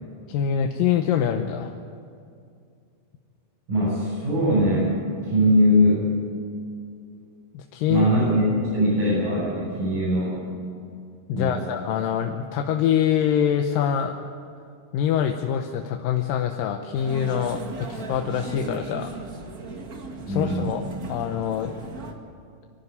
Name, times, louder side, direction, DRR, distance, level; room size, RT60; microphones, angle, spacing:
voice 1, 0.3-1.7 7.5-8.1 11.3-14.1 14.9-19.1 20.3-20.8 21.1-21.8, left 9 dB, 85° left, 4 dB, 2.6 m, -24 dB
voice 2, 3.7-4.9 5.2-6.0 7.9-8.4 8.7-10.4 11.3-11.6 20.3-20.8, equal, 70° right, -10 dB, 8.9 m, -21 dB
sound 1, 16.9-22.1, right 3 dB, 40° right, 1.5 m, -37 dB
24.0 x 13.0 x 9.5 m, 2.4 s
omnidirectional pair, 3.9 m